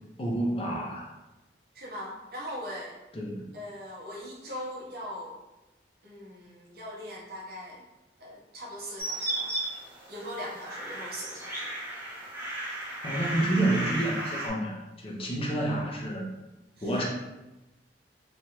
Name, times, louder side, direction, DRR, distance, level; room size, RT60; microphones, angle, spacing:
voice 1, 0.2-1.1 3.1-3.4 13.0-16.2 16.8-17.0, right 1 dB, 30° left, -2 dB, 0.5 m, -29 dB
voice 2, 1.7-3.0 3.5-5.4 6.0-7.8 8.2-9.5 10.1-11.7 16.8-17.0, equal, 55° right, -4 dB, 0.7 m, -40 dB
sound 1, 9.0-14.5, right 1 dB, 15° right, 0.7 m, -35 dB
3.0 x 2.3 x 2.8 m, 1.0 s
head